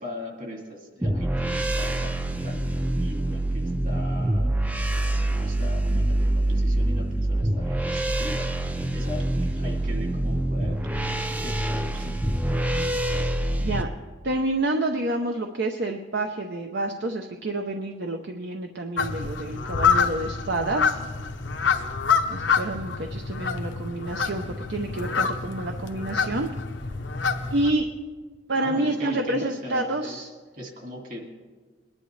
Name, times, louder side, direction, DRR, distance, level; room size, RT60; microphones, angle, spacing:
voice 1, 0.0-8.5 8.9-11.1 11.4-12.2 28.5-30.2 30.5-31.2, left 1 dB, 45° right, 1 dB, 2.2 m, -40 dB
sound 1, 1.0-13.8, right 1 dB, 10° right, 0.5 m, -25 dB
voice 2, 14.2-21.0 22.3-26.5 27.5-27.9 28.5-30.3, right 2 dB, 65° right, 4 dB, 0.7 m, -28 dB
sound 2, 19.0-27.7, left 5 dB, 80° left, 0.9 m, -27 dB
21.5 x 10.5 x 3.2 m, 1.4 s
head